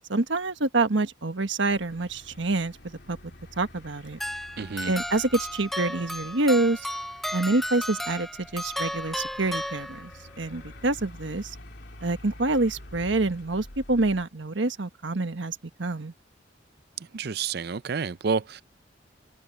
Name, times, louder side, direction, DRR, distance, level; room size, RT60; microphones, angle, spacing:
voice 1, 0.1-2.8 3.1-3.2 3.6-4.2 4.8-6.9 7.3-10.1 10.4-11.5 12.0-16.1, right 2 dB, 75° right, 1.3 m, -26 dB
sound 1, 1.7-14.2, left 1 dB, 60° left, 2.9 m, -48 dB
sound 2, 4.2-10.4, equal, ahead, 0.4 m, -34 dB
voice 2, 4.6-4.9 17.1-18.6, right 5 dB, 55° right, 0.5 m, -29 dB
head